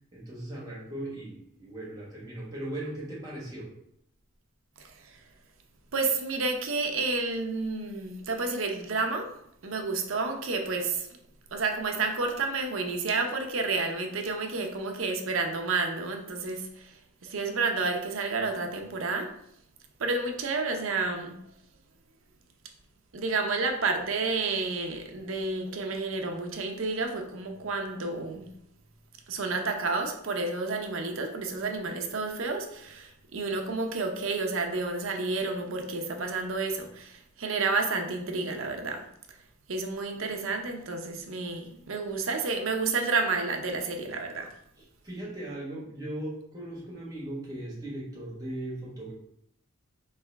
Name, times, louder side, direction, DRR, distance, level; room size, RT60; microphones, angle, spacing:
voice 1, 0.1-3.7 45.0-49.1, right 1 dB, 20° right, 1.4 m, -38 dB
voice 2, 4.8-5.2 5.9-9.3 9.6-11.1 11.5-19.3 20.0-21.4 23.1-28.5 29.3-39.1 39.7-44.5, right 3 dB, 75° right, 0.7 m, -30 dB
4.7 x 3.3 x 3.4 m
head